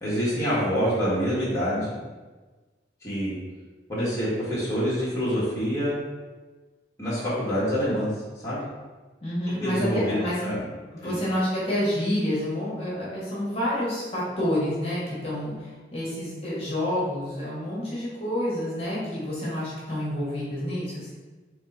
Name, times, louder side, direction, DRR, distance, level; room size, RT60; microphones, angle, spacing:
voice 1, 0.0-2.0 3.0-3.3 3.9-5.9 7.0-8.1 8.4-8.6 9.6-10.6 11.0-11.2, equal, 15° left, -9 dB, 1.3 m, -26 dB
voice 2, 9.2-10.5 10.9-21.1, left 1 dB, 35° left, -8 dB, 1.3 m, -28 dB
3.6 x 3.2 x 4.1 m, 1.3 s
head